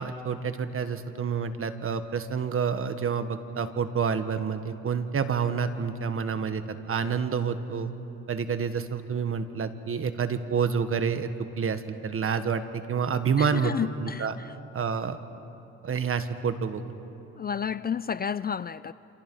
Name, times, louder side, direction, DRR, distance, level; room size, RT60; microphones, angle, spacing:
voice 1, 0.0-6.6 6.9-7.9 8.3-11.3 11.6-13.7 14.0-14.3 14.7-15.2 15.8-16.8, right 6 dB, 45° right, 1.6 m, -28 dB
voice 2, 13.4-14.5 17.4-18.9, left 7 dB, 30° left, 0.4 m, -31 dB
28.0 x 27.5 x 5.5 m
cardioid pair, 90°, 30 cm